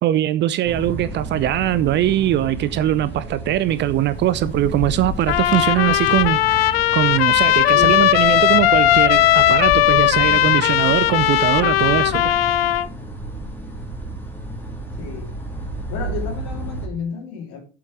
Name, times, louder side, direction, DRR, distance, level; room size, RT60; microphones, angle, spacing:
voice 1, 0.0-12.3, right 13 dB, 35° right, 0.6 m, -21 dB
sound 1, 0.6-16.9, right 1 dB, 5° left, 2.7 m, -33 dB
Thunder / Rain, 3.7-11.3, left 6 dB, 25° left, 1.1 m, -36 dB
Trumpet, 5.3-12.9, left 13 dB, 70° left, 0.5 m, -17 dB
voice 2, 7.7-8.0 15.0-15.3 15.9-17.6, left 6 dB, 55° left, 3.0 m, -30 dB
7.5 x 7.3 x 4.9 m
figure-of-eight pair, 70°, 31 cm